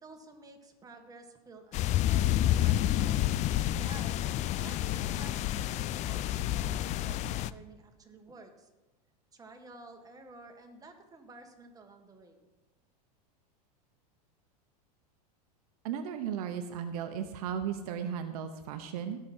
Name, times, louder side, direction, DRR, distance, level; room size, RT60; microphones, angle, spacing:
voice 1, 0.0-3.2 3.8-8.7 9.3-12.5, right 3 dB, 15° right, 4 dB, 1.8 m, -52 dB
sound 1, 1.7-7.5, left 13 dB, 35° left, 0.4 m, -29 dB
voice 2, 15.8-19.2, right 8 dB, 65° right, 8 dB, 1.0 m, -35 dB
17.0 x 6.2 x 4.5 m, 1.1 s
hypercardioid pair, 110°, 20 cm